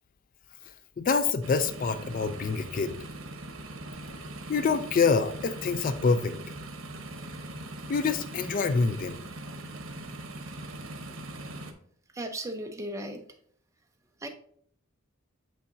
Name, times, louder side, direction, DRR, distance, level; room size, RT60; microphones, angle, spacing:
voice 1, 1.0-2.9 4.5-6.4 7.9-9.2, left 4 dB, 40° left, 11 dB, 0.4 m, -26 dB
sound 1, 1.4-11.7, right 2 dB, 80° right, 0.9 m, -41 dB
voice 2, 12.1-13.2 14.2-14.3, right 1 dB, 15° right, 4 dB, 0.7 m, -36 dB
7.6 x 5.6 x 2.7 m, 0.62 s
head